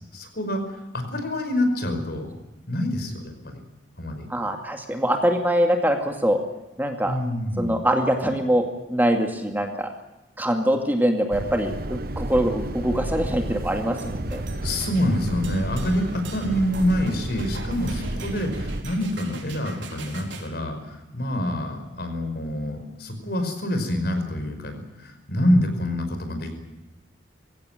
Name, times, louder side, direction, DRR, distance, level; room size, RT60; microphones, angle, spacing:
voice 1, 0.1-2.3 2.7-3.6 4.0-4.3 7.1-7.8 14.5-26.5, left 1 dB, 60° left, 6 dB, 5.4 m, -26 dB
voice 2, 4.3-6.4 6.8-7.2 7.6-9.9 10.4-14.4, equal, 10° right, 4 dB, 2.2 m, -23 dB
sound 1, 11.3-18.8, right 1 dB, 55° right, 1.2 m, -32 dB
sound 2, 14.0-20.5, right 1 dB, 80° right, 4.8 m, -38 dB
23.5 x 16.5 x 9.2 m, 1.0 s
head